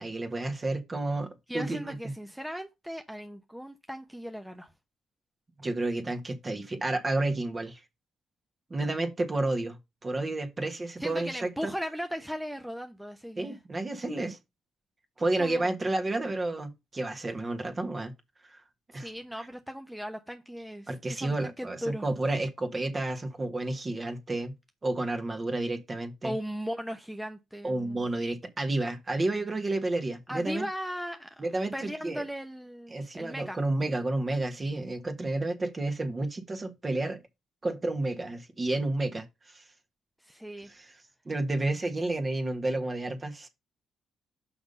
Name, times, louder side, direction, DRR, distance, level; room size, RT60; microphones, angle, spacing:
voice 1, 0.0-2.1 5.6-7.8 8.7-11.7 13.4-14.4 15.2-18.1 18.5-18.6 18.9-19.1 20.9-24.5 24.8-26.4 27.6-30.7 31.4-32.2 32.9-37.2 37.6-39.6 40.6-40.9 41.2-43.5, right 2 dB, 30° right, 1.6 m, -31 dB
voice 2, 1.5-4.7 11.0-13.6 15.4-15.7 18.9-22.1 26.2-28.0 30.3-31.5 31.7-33.6 40.2-40.7, equal, ahead, 0.8 m, -37 dB
5.9 x 5.4 x 5.4 m
cardioid pair, 90°, 0 cm